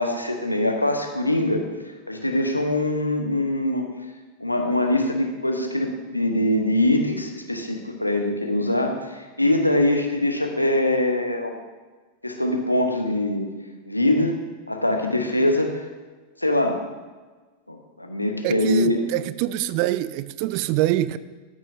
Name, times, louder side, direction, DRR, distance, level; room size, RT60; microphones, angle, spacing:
voice 1, 0.0-1.6 2.1-3.9 4.4-11.6 12.2-13.5 13.9-14.4 14.7-15.9 16.4-16.8 17.7-19.0, left 1 dB, 85° left, 0.9 m, -23 dB
voice 2, 18.4-21.2, right 15 dB, 45° right, 0.3 m, -25 dB
13.0 x 6.1 x 2.7 m
figure-of-eight pair, 90°, 0 cm